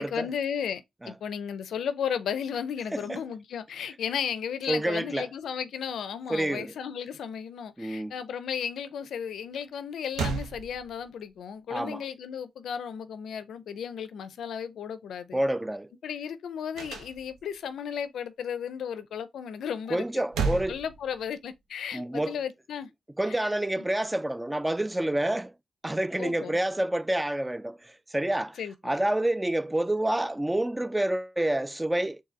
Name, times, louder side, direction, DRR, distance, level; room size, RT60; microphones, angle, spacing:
voice 1, 0.0-15.4 16.0-22.9 23.3-23.5 23.8-23.9 26.2-26.6 28.6-29.0, left 8 dB, 80° left, 0.4 m, -34 dB
voice 2, 4.7-5.3 6.3-6.7 7.8-8.1 11.7-12.0 15.3-15.9 19.9-20.8 21.9-22.4 23.2-25.5 25.8-32.2, right 1 dB, 15° right, 0.3 m, -28 dB
sound 1, 9.7-9.8 10.1-11.3 16.7-17.6 20.0-21.6, right 4 dB, 90° right, 0.7 m, -33 dB
4.0 x 2.6 x 3.5 m
supercardioid pair, 50°, 0 cm